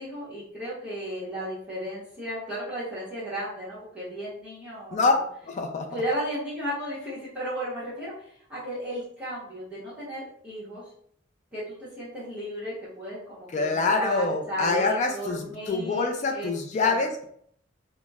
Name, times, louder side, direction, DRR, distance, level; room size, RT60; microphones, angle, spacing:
voice 1, 0.0-5.1 5.9-10.8 11.5-16.5 16.8-17.0, equal, 5° right, -11 dB, 1.0 m, -34 dB
voice 2, 5.5-5.9 13.5-17.2, left 3 dB, 35° left, 4 dB, 0.3 m, -25 dB
4.0 x 2.0 x 2.3 m, 0.65 s
head